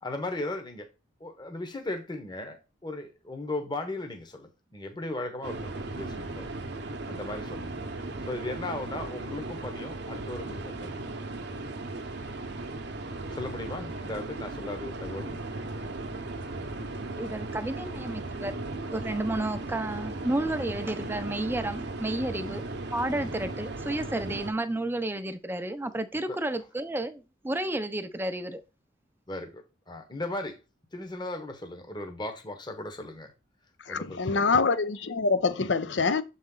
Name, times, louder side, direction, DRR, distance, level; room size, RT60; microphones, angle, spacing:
voice 1, 0.0-0.9 1.2-6.5 7.1-7.7 8.2-11.0 13.3-15.4 22.4-22.6 23.1-23.3 24.3-24.4 26.3-26.4 29.3-30.6 30.9-33.3 33.9-34.6, left 2 dB, 25° left, 1.0 m, -37 dB
sound 1, 5.4-24.5, right 2 dB, 60° right, 0.8 m, -37 dB
voice 2, 17.2-18.5 18.9-22.6 22.9-28.6, right 1 dB, 10° right, 0.5 m, -31 dB
voice 3, 33.9-36.2, left 4 dB, 70° left, 0.7 m, -25 dB
7.0 x 4.2 x 3.8 m
head